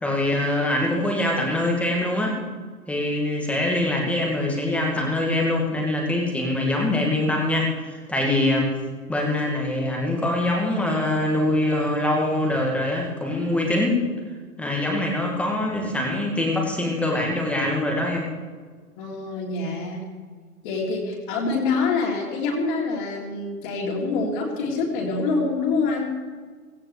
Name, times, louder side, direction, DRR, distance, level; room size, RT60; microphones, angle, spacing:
voice 1, 0.0-2.4 2.9-8.7 9.1-14.0 14.6-18.3, left 1 dB, 5° left, -1 dB, 2.1 m, -23 dB
voice 2, 19.0-20.0 20.6-26.1, left 3 dB, 30° left, -2 dB, 3.2 m, -26 dB
17.0 x 16.5 x 3.4 m, 1.5 s
figure-of-eight pair, 135°, 46 cm